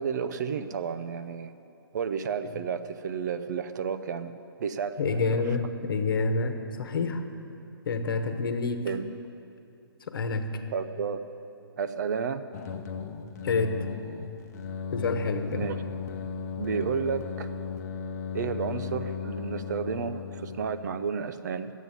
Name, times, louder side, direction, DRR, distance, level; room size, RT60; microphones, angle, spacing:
voice 1, 0.0-1.5 1.9-4.3 4.6-5.4 8.8-9.1 10.7-11.2 11.8-12.4 15.5-15.8 16.6-17.5 18.3-21.7, right 6 dB, 45° right, 11 dB, 0.6 m, -31 dB
voice 2, 5.0-7.2 7.8-8.9 10.1-10.5 13.4-13.9 14.9-15.7, left 4 dB, 60° left, 7 dB, 1.2 m, -28 dB
sound 1, 12.5-21.1, left 6 dB, 40° left, 0.9 m, -36 dB
12.0 x 8.3 x 9.3 m, 2.7 s
hypercardioid pair, 155°, 13 cm